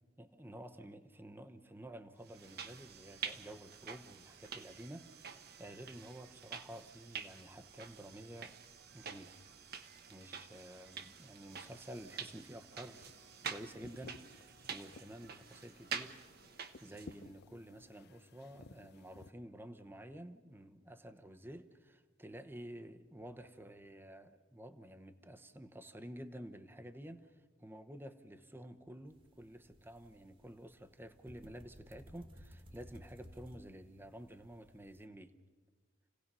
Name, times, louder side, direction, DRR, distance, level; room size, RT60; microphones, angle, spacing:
voice 1, 0.2-8.5 8.9-9.4 10.1-13.1 13.5-16.2 16.8-35.4, right 1 dB, 10° right, 0.9 m, -51 dB
sound 1, 2.3-17.2, right 6 dB, 55° right, 1.2 m, -48 dB
sound 2, 12.8-19.3, left 3 dB, 55° left, 0.8 m, -58 dB
sound 3, 29.1-35.1, equal, 30° right, 1.6 m, -58 dB
29.5 x 17.0 x 5.5 m
head